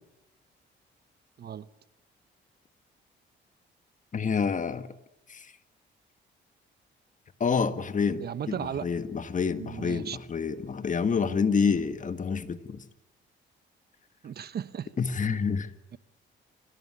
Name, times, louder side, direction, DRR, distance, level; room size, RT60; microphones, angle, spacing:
voice 1, 4.1-4.9 5.3-5.5 7.4-8.6 8.8-12.8 15.0-15.7, left 5 dB, 40° left, 11 dB, 1.7 m, -28 dB
voice 2, 8.2-8.9 9.5-10.2 14.2-14.9, right 8 dB, 55° right, 15 dB, 1.0 m, -35 dB
25.0 x 18.0 x 9.8 m, 0.93 s
cardioid pair, 90°, 20 cm